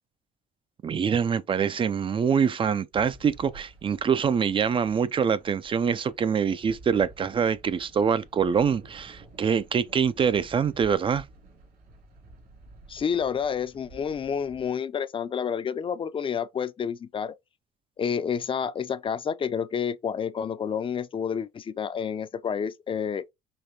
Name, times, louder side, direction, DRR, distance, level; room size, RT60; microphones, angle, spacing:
voice 1, 0.8-11.2, right 7 dB, 30° right, 0.4 m, -25 dB
sound 1, 2.9-14.7, right 2 dB, 65° right, 2.4 m, -51 dB
voice 2, 12.9-17.4 18.0-23.2, left 7 dB, 30° left, 0.5 m, -29 dB
5.2 x 3.2 x 2.8 m
cardioid pair, 110°, 17 cm